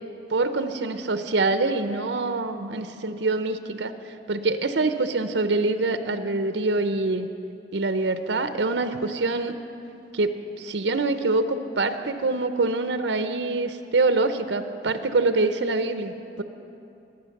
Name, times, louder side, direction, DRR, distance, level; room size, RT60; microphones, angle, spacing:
voice 1, 0.3-7.3 7.7-9.5 10.1-16.4, right 3 dB, 80° right, 9 dB, 0.7 m, -25 dB
23.5 x 9.2 x 6.5 m, 2.7 s
head